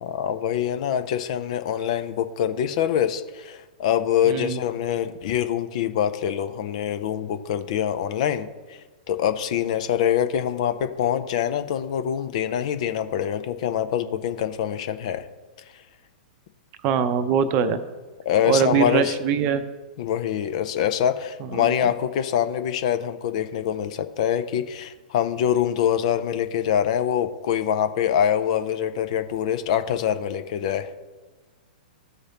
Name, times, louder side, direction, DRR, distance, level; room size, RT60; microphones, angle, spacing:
voice 1, 0.0-8.5 9.1-15.3 18.2-19.1 20.0-30.9, left 9 dB, 45° left, 9 dB, 0.5 m, -24 dB
voice 2, 4.2-4.6 16.8-17.8 18.5-19.6 21.4-21.7, right 7 dB, 35° right, 11 dB, 0.6 m, -22 dB
14.5 x 4.8 x 2.9 m, 1.3 s
figure-of-eight pair, 105°, 5 cm